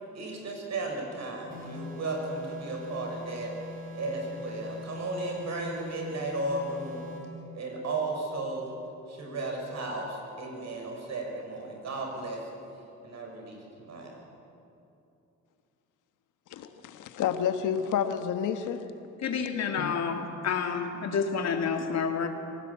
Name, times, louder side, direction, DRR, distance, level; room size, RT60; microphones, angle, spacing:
voice 1, 0.1-3.5 3.9-7.0 7.5-8.7 9.1-12.4 13.0-14.1, right 2 dB, 60° right, 1 dB, 6.8 m, -34 dB
sound 1, 1.5-7.3, left 2 dB, 30° right, 6.1 m, -42 dB
voice 2, 16.6-18.8 19.8-19.9, left 8 dB, 85° left, 9 dB, 1.5 m, -29 dB
voice 3, 19.2-22.3, left 6 dB, 60° left, 4 dB, 2.8 m, -29 dB
25.5 x 17.5 x 8.7 m, 2.8 s
cardioid pair, 90°, 30 cm